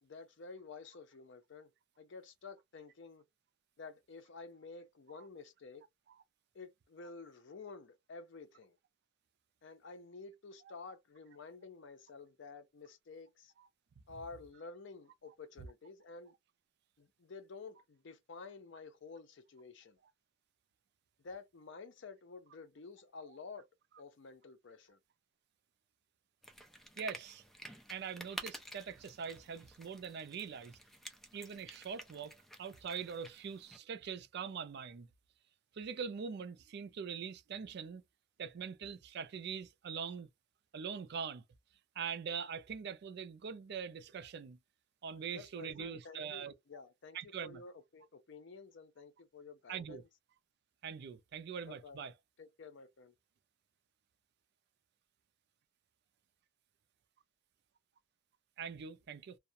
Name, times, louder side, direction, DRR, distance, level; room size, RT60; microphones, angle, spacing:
voice 1, 0.0-1.7 2.0-3.2 3.8-5.8 6.5-8.8 9.6-13.5 14.1-16.3 17.0-20.0 21.2-23.7 24.0-25.0 45.3-50.1 51.7-52.1 52.4-53.1, left 4 dB, 65° left, 0.5 m, -51 dB
sound 1, 26.4-33.8, equal, ahead, 0.5 m, -51 dB
voice 2, 27.0-27.4 27.9-30.8 31.3-35.1 35.7-38.0 38.4-40.3 40.7-41.4 42.0-44.6 45.0-46.5 47.1-47.6 49.7-50.0 50.8-52.1 58.6-59.4, right 6 dB, 60° right, 0.4 m, -43 dB
2.3 x 2.1 x 2.7 m
head